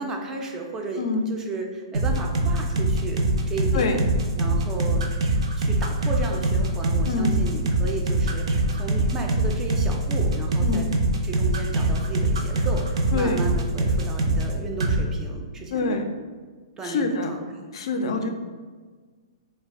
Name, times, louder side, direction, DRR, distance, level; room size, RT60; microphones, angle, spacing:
voice 1, 0.0-3.2 3.5-4.0 4.4-5.0 5.6-10.9 11.2-16.0 16.7-17.6 17.9-18.3, right 3 dB, 15° right, 1 dB, 0.3 m, -34 dB
sound 1, 1.9-14.5 14.8-15.0, right 2 dB, 75° right, 0.5 m, -23 dB
voice 2, 7.1-7.4 10.6-10.9 13.1-13.4 15.7-16.0 16.8-17.3 17.7-18.3, left 3 dB, 65° left, 5 dB, 0.3 m, -25 dB
2.4 x 2.2 x 3.4 m, 1.5 s
hypercardioid pair, 140°, 3 cm